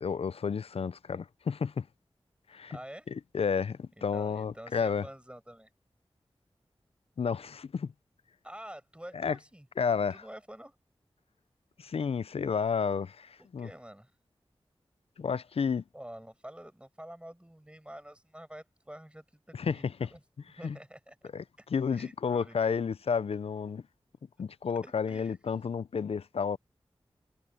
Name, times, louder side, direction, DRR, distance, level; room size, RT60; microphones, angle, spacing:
voice 1, 0.0-1.9 2.5-2.8 3.1-5.1 7.2-7.9 9.1-9.4 9.8-10.2 11.8-13.7 15.2-15.8 19.5-20.1 20.6-20.8 21.3-21.4 21.7-23.8 24.4-26.6, left 6 dB, 75° left, 0.5 m, -31 dB
voice 2, 2.5-3.1 4.1-5.7 8.4-9.7 10.1-10.8 13.4-14.1 15.9-20.2 20.6-21.3 21.6-21.7 21.9-22.8 24.8-25.4, right 1 dB, 10° right, 6.9 m, -48 dB
wide cardioid pair, 70°, 10 cm